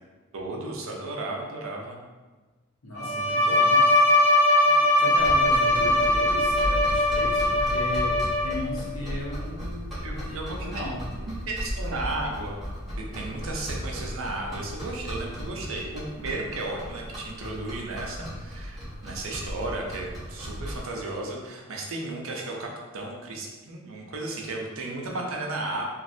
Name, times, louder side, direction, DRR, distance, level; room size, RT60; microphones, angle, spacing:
voice 1, 0.3-2.0 3.1-3.6 10.0-10.9 11.2-12.6 13.0-25.8, right 2 dB, 70° right, -1 dB, 0.6 m, -34 dB
voice 2, 2.8-3.9 4.6-8.1 8.4-11.0, left 1 dB, 75° left, -6 dB, 1.1 m, -36 dB
Bowed string instrument, 3.0-8.8, left 2 dB, 35° right, 0.8 m, -21 dB
sound 1, 5.2-20.9, equal, ahead, 1.1 m, -36 dB
3.1 x 2.6 x 2.6 m, 1.3 s
head